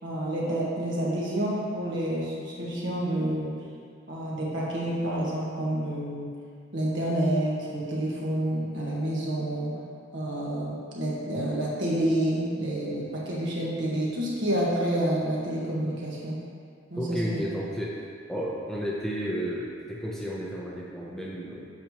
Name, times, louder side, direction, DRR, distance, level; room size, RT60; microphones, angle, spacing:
voice 1, 0.0-3.6 4.1-6.3 6.7-9.8 10.1-16.4 16.9-17.4, right 1 dB, 65° right, -5 dB, 1.4 m, -29 dB
voice 2, 17.0-18.0 18.3-21.7, equal, 5° left, -5 dB, 0.6 m, -32 dB
8.2 x 5.8 x 2.9 m, 2.2 s
head